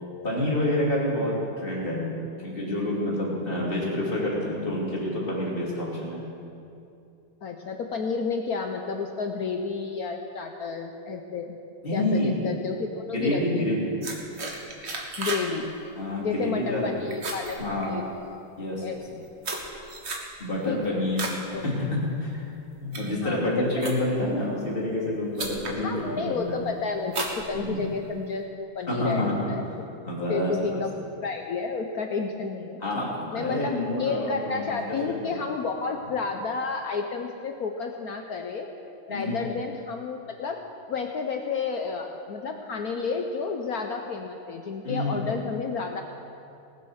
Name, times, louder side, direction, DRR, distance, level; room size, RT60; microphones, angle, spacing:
voice 1, 0.2-6.3 11.8-12.4 13.1-13.9 16.0-16.9 17.6-18.0 18.6-18.9 20.4-21.2 21.5-22.4 22.8-26.6 27.5-27.8 28.9-29.5 30.0-30.8 32.8-35.3 39.1-39.4 44.8-45.3, left 1 dB, 25° left, -5 dB, 3.1 m, -28 dB
voice 2, 7.4-11.6 11.9-13.6 15.2-15.7 16.2-18.0 18.8-19.3 20.7-21.1 21.5-21.6 23.2-23.7 25.7-29.7 30.3-32.8 33.3-38.7 39.1-40.6 40.9-46.0, left 4 dB, 65° left, 4 dB, 0.9 m, -31 dB
sound 1, 14.0-15.5 15.8-16.1 16.5-16.8 17.1-18.3 18.9-21.4 21.8-22.2 22.7-24.3 25.0-25.1 25.4-25.8 26.3-26.6 27.1-28.1, right 3 dB, 35° right, 1.4 m, -34 dB
19.5 x 7.4 x 6.4 m, 2.6 s
omnidirectional pair, 2.4 m